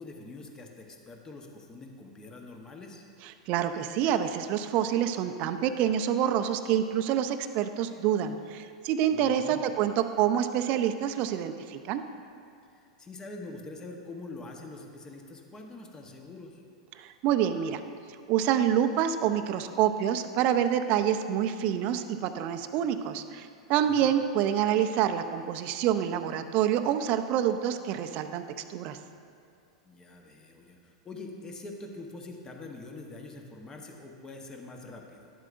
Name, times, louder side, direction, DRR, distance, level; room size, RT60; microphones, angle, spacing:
voice 1, 0.0-3.0 9.1-9.7 12.7-16.6 23.8-24.2 29.8-35.3, left 2 dB, 20° left, 2 dB, 1.0 m, -44 dB
voice 2, 3.5-12.0 17.0-17.8 18.3-28.4 28.7-29.0, right 10 dB, 45° right, 9 dB, 0.5 m, -27 dB
11.0 x 7.6 x 2.5 m, 2.4 s
hypercardioid pair, 105°, 3 cm